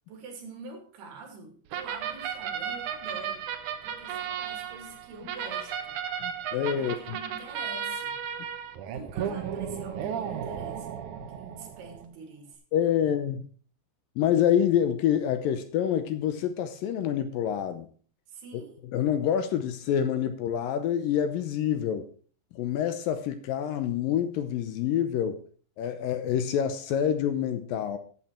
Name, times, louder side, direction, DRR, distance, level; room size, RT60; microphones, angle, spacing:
voice 1, 0.1-3.4 3.8-6.0 6.8-8.2 8.9-11.0 11.3-12.6 18.3-18.8, right 3 dB, 85° right, 4.3 m, -45 dB
sound 1, 1.7-12.1, right 8 dB, 70° right, 2.0 m, -34 dB
voice 2, 6.2-7.0 12.7-13.5 14.2-17.9 18.9-22.1 22.5-25.4 25.8-28.0, left 9 dB, 75° left, 2.3 m, -27 dB
12.0 x 7.7 x 4.4 m
omnidirectional pair, 4.5 m